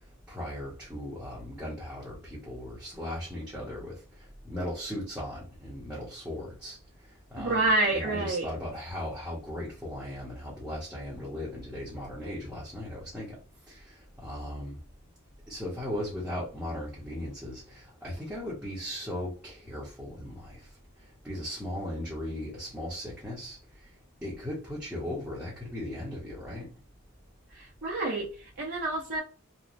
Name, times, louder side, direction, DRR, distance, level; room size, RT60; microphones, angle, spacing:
voice 1, 0.3-4.0 4.4-6.8 7.3-13.4 13.7-13.9 14.2-14.8 15.5-20.6 21.2-23.6 24.2-26.7, left 1 dB, 5° right, 0.7 m, -37 dB
voice 2, 7.4-8.5 27.6-28.3 28.6-29.2, right 2 dB, 55° right, 0.6 m, -28 dB
3.0 x 2.1 x 2.5 m
head